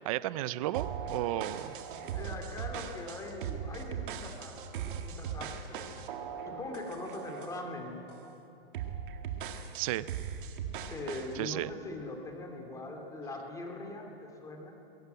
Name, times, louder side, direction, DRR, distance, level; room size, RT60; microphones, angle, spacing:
voice 1, 0.0-1.7 9.7-10.1 11.3-11.7, right 15 dB, 35° right, 17 dB, 0.5 m, -33 dB
sound 1, 0.7-7.7 8.1-8.3 8.7-11.3, right 7 dB, 55° right, 1.9 m, -39 dB
voice 2, 2.1-6.0 6.5-8.0 10.9-14.8, left 2 dB, 10° left, 3 dB, 2.6 m, -42 dB
21.0 x 17.0 x 9.1 m, 3.0 s
hypercardioid pair, 155°, 31 cm